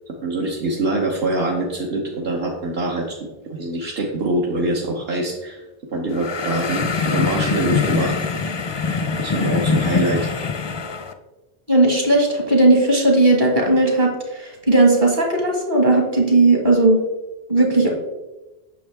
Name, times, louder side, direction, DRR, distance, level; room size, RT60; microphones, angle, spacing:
voice 1, 0.2-5.6 5.9-8.2 9.2-10.3, right 2 dB, 70° right, -3 dB, 1.3 m, -24 dB
sound 1, 6.1-11.1, left 5 dB, 35° left, 0.4 m, -23 dB
voice 2, 11.7-17.0 17.5-17.9, right 2 dB, 50° right, 0 dB, 1.9 m, -16 dB
8.5 x 6.2 x 3.5 m, 1.1 s
omnidirectional pair, 1.0 m